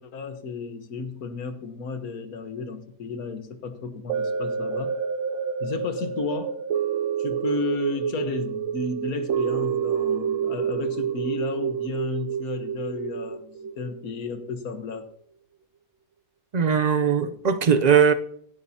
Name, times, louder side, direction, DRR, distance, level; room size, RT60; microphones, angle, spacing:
voice 1, 0.0-5.0 5.6-6.6 7.2-15.1, left 4 dB, 80° left, 1.6 m, -33 dB
sound 1, 4.1-14.5 14.9-15.0, right 7 dB, 65° right, 0.9 m, -28 dB
voice 2, 16.5-18.1, right 7 dB, 50° right, 0.5 m, -19 dB
16.5 x 9.5 x 2.8 m
omnidirectional pair, 1.5 m